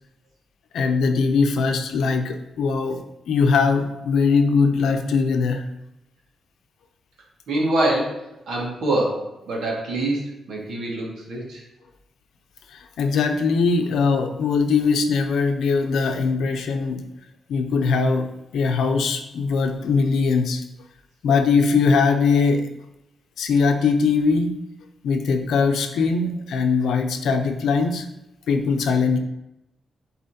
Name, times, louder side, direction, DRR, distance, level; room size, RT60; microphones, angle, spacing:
voice 1, 0.7-5.7 12.7-17.0 17.5-18.3 18.5-20.6 21.2-22.7 23.4-24.5 25.0-28.1 28.5-29.2, left 4 dB, 85° left, 5 dB, 0.7 m, -21 dB
voice 2, 7.5-11.6, right 1 dB, 80° right, -3 dB, 2.0 m, -25 dB
10.5 x 4.2 x 2.9 m, 0.89 s
wide cardioid pair, 155°, 0 cm